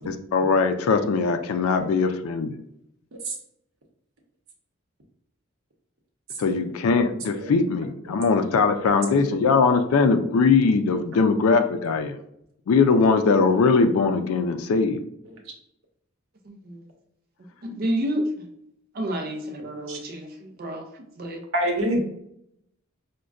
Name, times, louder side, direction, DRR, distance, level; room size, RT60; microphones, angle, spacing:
voice 1, 0.1-2.5 6.4-12.1 12.7-15.0, left 4 dB, 90° left, 7 dB, 0.4 m, -21 dB
voice 2, 17.6-18.2 19.0-20.3 20.6-20.8 21.2-21.4, right 1 dB, 45° right, 4 dB, 0.4 m, -29 dB
voice 3, 21.5-22.0, right 1 dB, 70° right, 0 dB, 0.9 m, -28 dB
5.1 x 2.1 x 2.4 m, 0.74 s
head